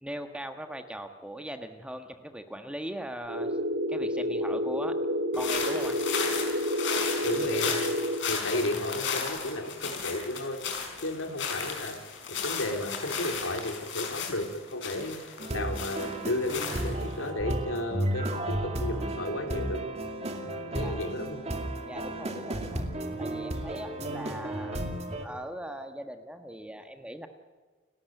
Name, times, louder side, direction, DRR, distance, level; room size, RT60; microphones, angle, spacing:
voice 1, 0.0-3.6 3.9-5.0 5.3-6.0 20.8-21.0 21.9-22.9 23.2-24.8 25.2-27.3, right 1 dB, 5° right, 6 dB, 1.3 m, -40 dB
sound 1, 3.3-8.2, equal, 75° right, 2.5 m, -29 dB
sound 2, 5.3-17.3, left 6 dB, 60° left, 5.1 m, -35 dB
voice 2, 7.2-7.8 8.3-10.6 11.0-12.0 12.3-15.2 15.5-19.8 20.7-21.4, left 1 dB, 75° left, 5 dB, 3.5 m, -33 dB
sound 3, 15.4-25.3, right 1 dB, 30° right, 2.4 m, -33 dB
30.0 x 12.5 x 9.2 m, 1.4 s
head